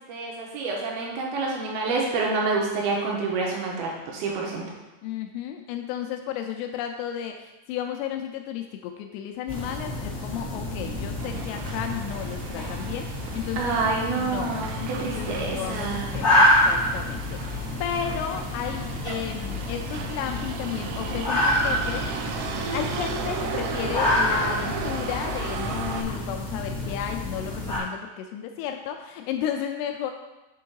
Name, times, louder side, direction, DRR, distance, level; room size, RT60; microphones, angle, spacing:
voice 1, 0.0-4.7 13.6-16.1, right 3 dB, 75° right, -1 dB, 2.4 m, -28 dB
voice 2, 5.0-13.7 14.2-22.3 22.7-30.1, left 9 dB, 85° left, 4 dB, 2.3 m, -33 dB
sound 1, 9.5-27.8, left 1 dB, 40° left, 0.9 m, -28 dB
Motor vehicle (road), 11.2-26.0, right 6 dB, 90° right, 2.2 m, -36 dB
7.8 x 3.7 x 4.6 m, 1.0 s
omnidirectional pair, 5.1 m